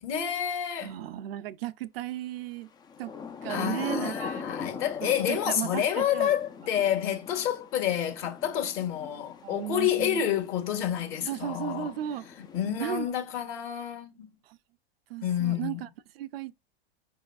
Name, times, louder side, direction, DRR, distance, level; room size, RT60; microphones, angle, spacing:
voice 1, 0.0-0.9 3.5-11.9 12.4-14.4 15.2-15.8, left 10 dB, 45° left, 1.6 m, -29 dB
voice 2, 0.8-2.7 3.0-3.1 3.4-4.4 5.0-6.4 9.4-10.3 11.3-12.3 12.8-13.1 14.5-14.6 15.1-15.9 16.2-16.5, right 12 dB, 70° right, 0.5 m, -35 dB
Thunder / Rain, 2.8-13.3, left 5 dB, 15° left, 0.3 m, -41 dB
5.5 x 3.6 x 2.3 m
hypercardioid pair, 105°, 31 cm